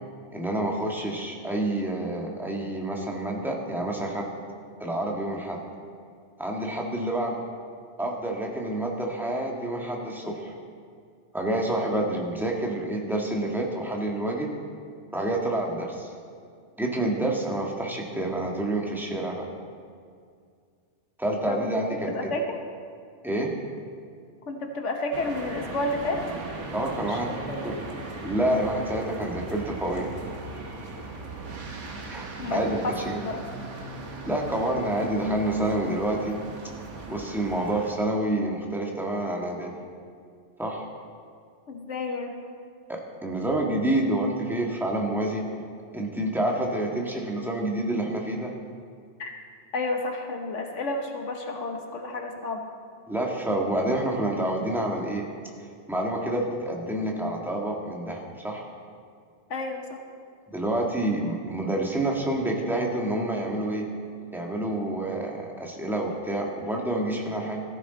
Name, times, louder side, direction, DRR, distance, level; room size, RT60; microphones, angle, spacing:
voice 1, 0.3-4.3 4.8-5.6 6.4-7.4 8.0-10.5 11.3-14.5 15.1-16.1 16.8-19.5 21.2-22.3 23.2-23.5 26.7-27.3 27.6-27.7 28.2-30.1 32.1-33.2 34.3-36.4 37.1-39.7 40.6-40.9 42.9-45.4 45.9-48.5 53.1-55.3 55.9-58.6 60.5-63.9 64.3-67.6, right 1 dB, ahead, -1 dB, 1.6 m, -28 dB
voice 2, 22.1-22.6 24.5-26.2 27.1-27.8 32.4-33.4 41.7-42.3 49.2-49.3 49.7-52.7 59.5-60.0, left 2 dB, 80° left, 3 dB, 1.4 m, -31 dB
sound 1, 25.1-37.9, right 3 dB, 80° right, 1.6 m, -38 dB
15.5 x 14.0 x 4.0 m, 2.2 s
omnidirectional pair, 1.2 m